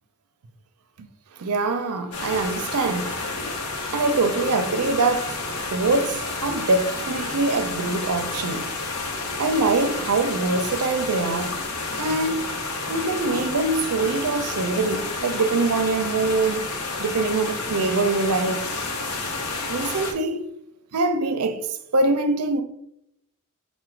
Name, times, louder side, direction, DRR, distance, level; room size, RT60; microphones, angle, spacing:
voice 1, 1.4-3.1 3.9-5.4 5.7-8.7 9.4-11.6 12.0-12.5 12.9-16.7 17.0-18.7 19.7-20.4 20.9-22.6, right 3 dB, 85° right, 0.6 m, -23 dB
sound 1, 2.1-20.1, left 3 dB, 80° left, 0.8 m, -30 dB
4.7 x 2.2 x 4.5 m
head